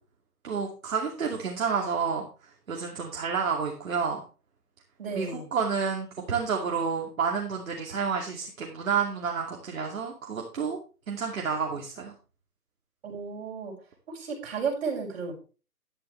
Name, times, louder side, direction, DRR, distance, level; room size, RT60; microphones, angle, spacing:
voice 1, 0.4-2.2 2.7-4.2 5.1-10.8 11.1-12.1, right 6 dB, 55° right, 0 dB, 2.6 m, -30 dB
voice 2, 5.0-5.5 13.0-13.7 14.1-15.3, right 5 dB, 40° right, -1 dB, 6.0 m, -33 dB
12.0 x 11.0 x 3.3 m, 0.35 s
hypercardioid pair, 165°, 47 cm